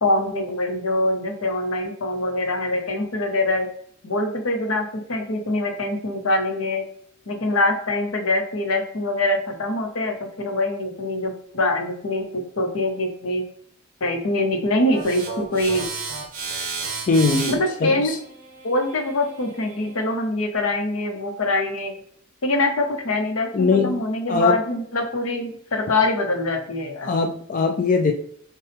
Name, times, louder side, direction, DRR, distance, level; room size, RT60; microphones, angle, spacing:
voice 1, 0.0-3.7 4.0-6.8 7.3-13.4 14.0-15.9 17.5-18.1 18.6-21.9 22.4-27.1, left 2 dB, 80° left, 4 dB, 0.9 m, -24 dB
sound 1, 14.9-20.1, right 4 dB, 40° right, 1.0 m, -33 dB
voice 2, 17.1-18.2 23.5-24.6 27.0-28.1, left 4 dB, 40° left, 3 dB, 0.4 m, -21 dB
5.6 x 2.3 x 3.4 m, 0.64 s
head